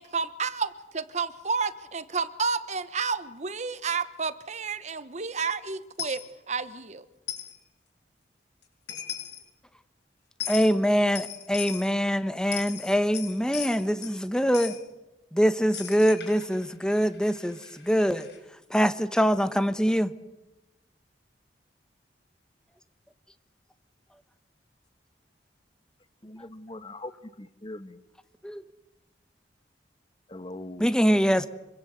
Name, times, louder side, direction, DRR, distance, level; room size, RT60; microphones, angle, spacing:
voice 1, 0.0-7.0, right 5 dB, 40° right, 13 dB, 1.0 m, -31 dB
Coin (dropping), 6.0-6.2 7.3-7.5 8.6-8.7 8.9-9.4 10.4-10.7 11.2-11.9 12.4-14.2 14.5-14.8 15.7-18.4, left 9 dB, 75° left, 6.4 m, -38 dB
voice 2, 10.5-14.8 15.3-18.3 18.7-20.1 28.4-28.6 30.8-31.5, equal, 5° left, 11 dB, 1.1 m, -24 dB
voice 3, 26.2-27.1 27.4-28.0 30.3-30.9, left 1 dB, 30° left, 11 dB, 1.3 m, -41 dB
25.5 x 24.0 x 8.1 m, 0.99 s
head